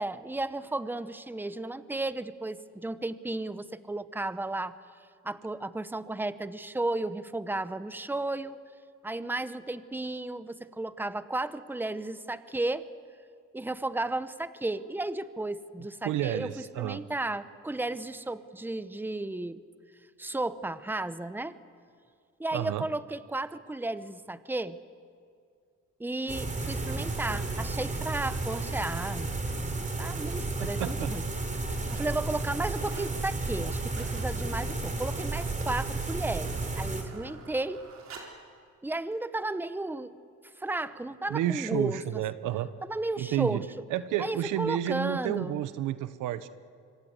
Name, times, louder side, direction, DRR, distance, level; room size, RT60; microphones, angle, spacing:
voice 1, 0.0-4.7 5.2-8.6 9.0-12.8 13.5-16.5 16.8-19.6 20.2-21.5 22.4-24.8 26.0-29.3 30.0-31.2 31.9-37.8 38.8-40.1 40.6-42.0 42.8-43.6 44.2-45.5, right 2 dB, 5° right, 13 dB, 0.9 m, -33 dB
voice 2, 16.0-17.0 22.5-22.9 30.6-31.3 41.3-42.7 43.2-43.6 43.9-46.5, right 12 dB, 90° right, 13 dB, 1.0 m, -31 dB
sound 1, 26.3-37.0, right 3 dB, 25° right, 4.1 m, -32 dB
sound 2, 30.0-30.1 30.7-31.1 31.4-32.2 32.5-33.1 33.5-38.5 39.1-39.2, right 4 dB, 60° right, 4.4 m, -51 dB
26.0 x 24.5 x 8.2 m, 2.3 s
cardioid pair, 90°, 30 cm